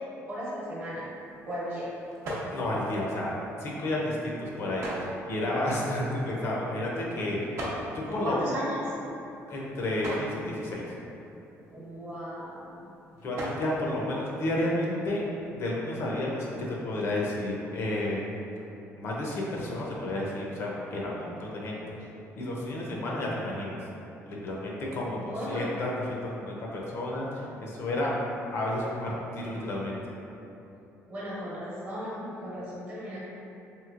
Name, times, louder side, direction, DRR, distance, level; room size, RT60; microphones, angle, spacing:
voice 1, 0.3-1.1 1.5-1.9 8.1-8.9 11.7-12.9 25.1-25.7 31.1-33.2, equal, 35° right, -8 dB, 0.9 m, -35 dB
sound 1, 0.6-15.0, equal, 55° right, 0.6 m, -42 dB
voice 2, 2.5-3.3 3.6-4.9 5.3-7.4 7.9-8.4 9.5-10.8 13.2-15.2 15.5-18.2 18.9-21.8 22.3-23.8 24.3-28.1 28.5-30.0, left 1 dB, 50° left, -3 dB, 0.5 m, -31 dB
3.0 x 2.8 x 2.4 m, 2.9 s
cardioid pair, 140°, 5 cm